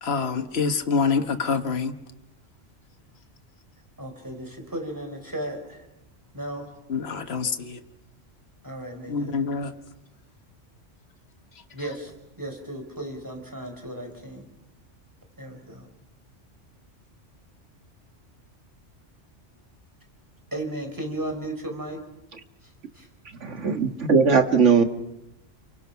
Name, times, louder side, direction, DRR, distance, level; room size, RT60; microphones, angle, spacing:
voice 1, 0.0-1.9 6.9-7.8 9.1-9.7 11.8-11.9, left 5 dB, 60° left, 7 dB, 1.6 m, -26 dB
voice 2, 4.0-5.8 6.3-6.7 8.6-9.3 11.7-12.1 12.4-14.4 15.4-15.9 20.5-22.0 22.9-23.1, right 1 dB, 15° right, 3 dB, 4.8 m, -35 dB
voice 3, 23.4-24.8, right 5 dB, 75° right, 6 dB, 2.0 m, -19 dB
30.0 x 24.0 x 5.8 m, 0.95 s
omnidirectional pair, 1.2 m